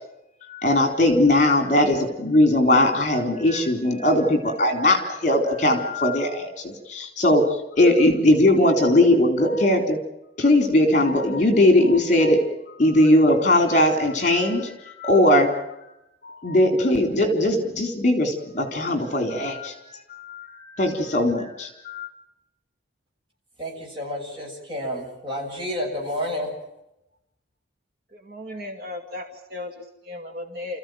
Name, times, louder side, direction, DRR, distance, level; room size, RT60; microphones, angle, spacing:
voice 1, 0.5-7.4 7.8-10.0 10.4-12.4 12.7-15.5 16.2-22.1, left 1 dB, 40° left, 6 dB, 3.8 m, -19 dB
voice 2, 23.6-26.5, equal, 25° right, -1 dB, 8.0 m, -30 dB
voice 3, 28.1-30.8, left 2 dB, 50° right, 4 dB, 2.4 m, -36 dB
29.5 x 15.0 x 9.2 m, 0.88 s
head